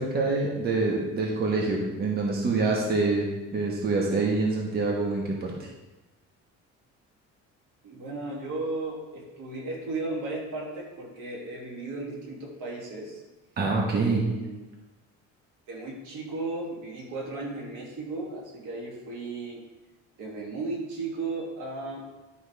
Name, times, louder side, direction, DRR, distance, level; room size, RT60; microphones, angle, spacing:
voice 1, 0.0-5.7 13.6-14.2, right 3 dB, 30° right, -1 dB, 1.3 m, -26 dB
voice 2, 7.8-13.2 14.0-14.6 15.7-19.6 20.2-22.1, right 2 dB, 80° right, -2 dB, 2.5 m, -35 dB
11.0 x 5.8 x 3.4 m, 1.1 s
cardioid pair, 165°, 30 cm